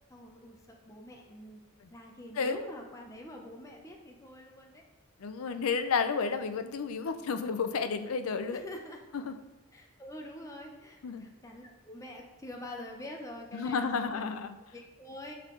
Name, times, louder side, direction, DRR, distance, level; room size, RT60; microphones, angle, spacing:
voice 1, 0.1-1.6 1.9-4.8 8.5-9.0 9.7-14.2 14.7-15.3, left 1 dB, 15° left, 0 dB, 0.6 m, -45 dB
voice 2, 5.2-8.6 9.1-9.4 11.0-11.2 13.5-14.6, left 5 dB, 75° left, 9 dB, 0.5 m, -31 dB
6.5 x 5.5 x 3.8 m, 1.1 s
head